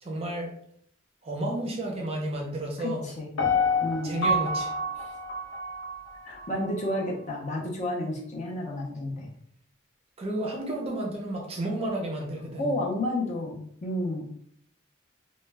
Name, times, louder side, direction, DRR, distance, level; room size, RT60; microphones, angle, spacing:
voice 1, 0.0-0.5 1.2-3.1 4.0-4.7 10.2-12.8, right 1 dB, 30° right, 0 dB, 0.5 m, -32 dB
voice 2, 2.8-3.3 3.8-4.3 5.0-5.1 6.2-9.3 12.6-14.2, left 1 dB, 35° left, -1 dB, 0.5 m, -31 dB
Piano, 3.4-6.5 6.9-7.0, left 2 dB, 90° left, 0.8 m, -28 dB
2.2 x 2.1 x 3.2 m, 0.66 s
head